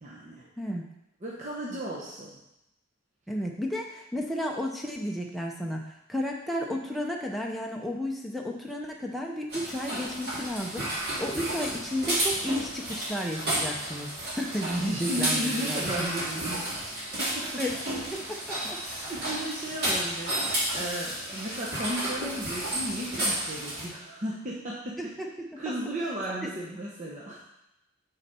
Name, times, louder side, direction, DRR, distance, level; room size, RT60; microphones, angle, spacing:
voice 1, 0.0-0.5 1.2-2.3 14.8-16.8 17.2-17.5 19.1-25.0 25.6-27.4, right 1 dB, 35° right, -4 dB, 0.9 m, -35 dB
voice 2, 0.6-0.9 1.7-1.8 3.3-16.1 17.4-17.7 18.1-18.8 25.0-25.5 26.4-26.5, equal, ahead, -1 dB, 0.6 m, -33 dB
sound 1, 9.5-23.9, right 1 dB, 50° right, 2.7 m, -32 dB
8.7 x 4.1 x 4.3 m, 0.88 s
head